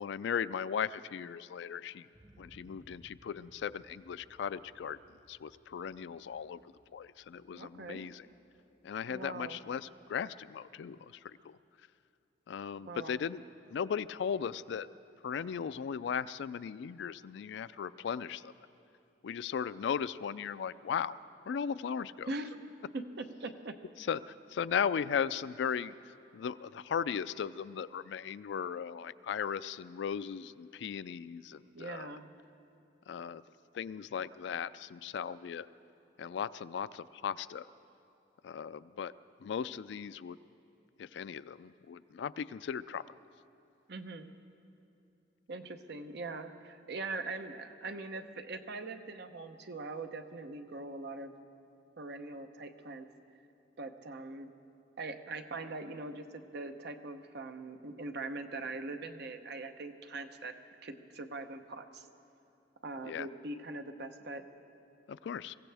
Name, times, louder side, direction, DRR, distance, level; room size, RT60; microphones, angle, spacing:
voice 1, 0.0-2.1 2.4-5.0 5.3-8.3 8.8-11.6 12.5-13.4 13.7-14.9 15.2-18.5 19.2-21.2 21.5-22.3 24.0-25.9 26.3-32.2 33.1-33.4 33.7-35.7 36.2-37.7 38.4-39.1 39.4-40.4 41.0-43.2 63.0-63.3 65.1-65.6, left 7 dB, 65° left, 17 dB, 0.3 m, -37 dB
sound 1, 2.1-10.0 10.4-10.5, right 1 dB, 20° right, 0.6 m, -64 dB
voice 2, 7.5-8.0 9.1-9.6 12.8-13.2 22.3-22.6 22.9-23.8 31.7-32.3 43.9-44.3 45.5-51.3 52.0-53.1 53.8-54.5 55.0-60.5 60.8-62.1 62.8-64.5, right 3 dB, 60° right, 7 dB, 0.8 m, -42 dB
23.0 x 15.5 x 3.4 m, 2.7 s
head